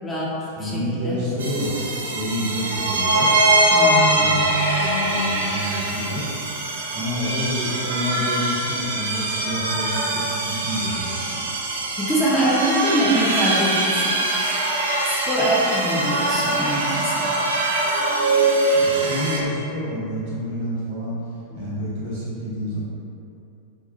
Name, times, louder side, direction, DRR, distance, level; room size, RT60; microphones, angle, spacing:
voice 1, 0.0-1.2 3.7-4.6 12.0-14.2 15.0-17.4 21.5-21.6, right 1 dB, 15° left, -6 dB, 0.4 m, -24 dB
voice 2, 0.6-3.3 3.9-6.2 6.9-11.4 18.7-21.2 21.5-22.8, equal, 55° right, -8 dB, 1.0 m, -28 dB
sound 1, 1.4-19.4, right 2 dB, 70° right, 0.3 m, -22 dB
2.7 x 2.3 x 2.4 m, 2.7 s
figure-of-eight pair, 90°, 0 cm